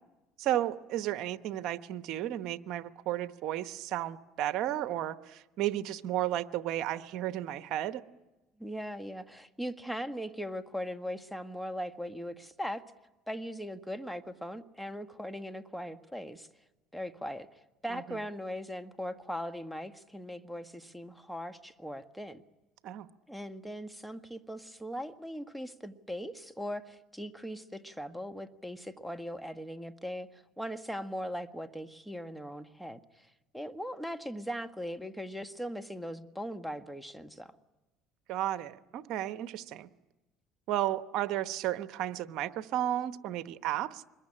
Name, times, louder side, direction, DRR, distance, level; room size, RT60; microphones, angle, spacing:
voice 1, 0.4-8.0 18.1-18.2 22.8-23.1 38.3-39.9 40.7-44.1, right 12 dB, 65° right, 12 dB, 1.0 m, -33 dB
voice 2, 8.6-12.8 13.3-16.5 16.9-17.5 17.8-22.4 23.3-33.3 33.5-37.5, equal, ahead, 8 dB, 1.5 m, -39 dB
26.0 x 22.0 x 10.0 m, 1.1 s
supercardioid pair, 90°, 0 cm